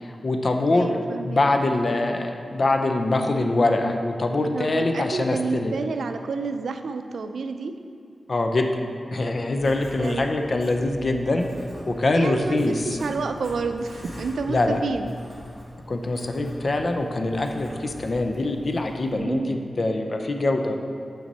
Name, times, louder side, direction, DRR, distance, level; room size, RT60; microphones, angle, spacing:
voice 1, 0.0-0.9 1.2-5.7 8.3-8.8 9.1-11.5 11.9-12.8 14.5-14.8 15.9-20.8, left 2 dB, 50° left, 4 dB, 0.6 m, -24 dB
voice 2, 0.7-1.5 4.5-7.7 9.7-10.3 12.1-15.1 19.1-19.6, right 4 dB, 85° right, 8 dB, 0.4 m, -30 dB
Writing, 9.6-19.2, equal, 30° left, 1.8 m, -42 dB
7.3 x 6.0 x 4.1 m, 2.4 s
wide cardioid pair, 85°, 0 cm